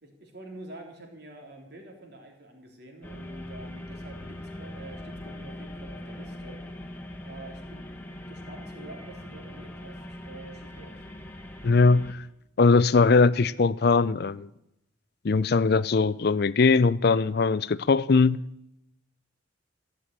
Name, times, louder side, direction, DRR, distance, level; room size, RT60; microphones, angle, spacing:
voice 1, 0.0-6.6 7.2-8.0 8.3-11.0, right 2 dB, 50° right, 3.5 m, -47 dB
sound 1, 3.0-12.1, left 1 dB, 10° left, 1.5 m, -41 dB
voice 2, 11.6-12.2 12.6-14.5 15.2-18.4, left 4 dB, 50° left, 0.4 m, -21 dB
15.5 x 8.4 x 9.0 m
head